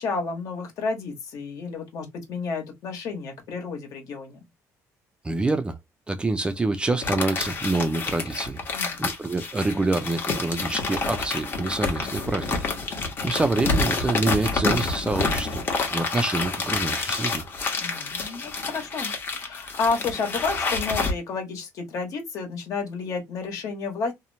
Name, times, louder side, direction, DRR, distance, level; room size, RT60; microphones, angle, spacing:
voice 1, 0.0-4.4 8.7-9.1 13.2-13.4 17.8-24.1, left 4 dB, 60° left, 1.2 m, -31 dB
voice 2, 5.2-5.8 6.1-8.6 9.0-12.6 13.2-15.6 15.9-17.4, right 2 dB, 15° right, 0.3 m, -26 dB
sound 1, 7.0-21.1, left 4 dB, 35° left, 0.9 m, -28 dB
2.8 x 2.0 x 2.7 m
cardioid pair, 135°, 6 cm